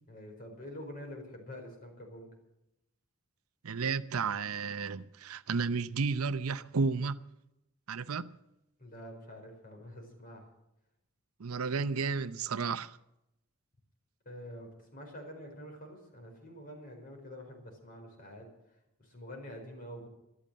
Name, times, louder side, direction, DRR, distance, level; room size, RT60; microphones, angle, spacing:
voice 1, 0.1-2.3 8.8-10.4 14.2-18.5 19.0-20.1, equal, 40° left, 4.6 m, -47 dB
voice 2, 3.6-7.2 7.9-8.3 11.4-13.0, right 4 dB, 85° right, 0.7 m, -32 dB
14.0 x 12.0 x 7.5 m
head